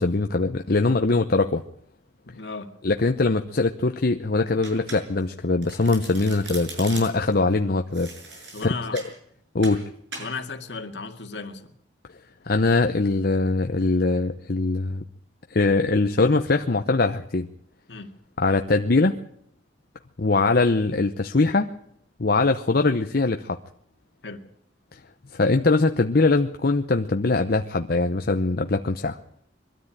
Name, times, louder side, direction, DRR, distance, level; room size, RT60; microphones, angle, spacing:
voice 1, 0.0-1.6 2.8-9.0 9.5-9.9 12.4-15.0 15.5-17.5 18.4-19.2 20.2-21.7 22.2-23.6 24.9-25.0 25.3-29.2, left 3 dB, 60° left, 0.8 m, -22 dB
voice 2, 2.3-2.7 8.5-9.0 10.2-11.7 17.9-18.1 24.2-24.4, left 4 dB, 75° left, 2.1 m, -35 dB
Domestic sounds home sounds, 4.6-5.3 5.6-7.3 7.9-9.1 9.6-9.8 10.1-10.3, right 3 dB, 85° right, 6.8 m, -39 dB
22.5 x 13.5 x 9.0 m
head